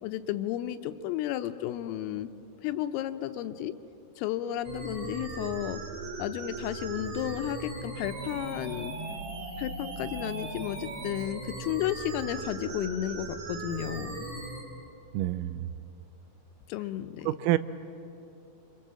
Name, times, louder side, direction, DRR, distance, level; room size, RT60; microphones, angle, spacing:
voice 1, 0.0-2.3 2.6-3.7 4.2-5.8 6.2-8.9 9.6-14.3 16.7-17.3, left 12 dB, 85° left, 10 dB, 3.4 m, -33 dB
sound 1, 4.6-14.6, right 3 dB, 40° right, 3.1 m, -38 dB
voice 2, 15.1-15.7 17.3-17.6, right 15 dB, 85° right, 13 dB, 3.4 m, -27 dB
29.5 x 27.0 x 7.6 m, 2.7 s
omnidirectional pair, 5.9 m